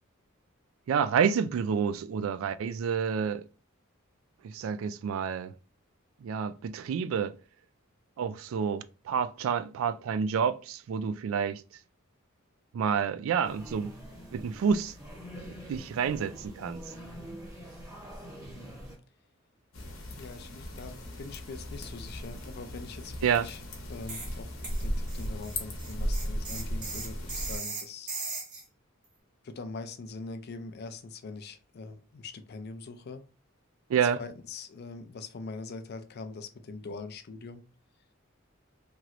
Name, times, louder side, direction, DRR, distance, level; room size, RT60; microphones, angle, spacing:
voice 1, 0.9-3.4 4.4-5.5 6.2-7.3 8.2-11.6 12.7-13.9 14.3-14.9 15.4-16.8 23.2-23.5 33.9-34.2, right 7 dB, 75° right, 0.3 m, -29 dB
sound 1, 13.4-19.0, equal, 15° right, 0.9 m, -45 dB
voice 2, 18.4-18.7 20.2-23.6 23.9-28.1 29.4-33.2 34.2-37.6, left 3 dB, 50° left, 0.4 m, -43 dB
sound 2, 19.7-27.6, equal, 85° left, 0.9 m, -36 dB
sound 3, 24.1-24.3 24.6-28.6, right 3 dB, 40° right, 1.3 m, -38 dB
3.0 x 3.0 x 2.5 m
head